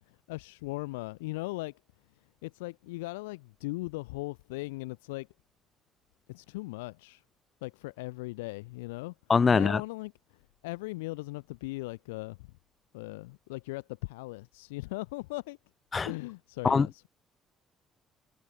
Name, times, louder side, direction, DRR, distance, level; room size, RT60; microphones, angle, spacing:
voice 1, 0.3-1.7 2.4-5.3 6.3-7.2 7.6-9.1 9.5-12.5 12.9-15.6 16.0-17.1, left 22 dB, 70° left, 3.3 m, -38 dB
voice 2, 9.3-9.8 15.9-16.1 16.6-16.9, left 5 dB, 35° left, 1.2 m, -22 dB
figure-of-eight pair, 50°, 0 cm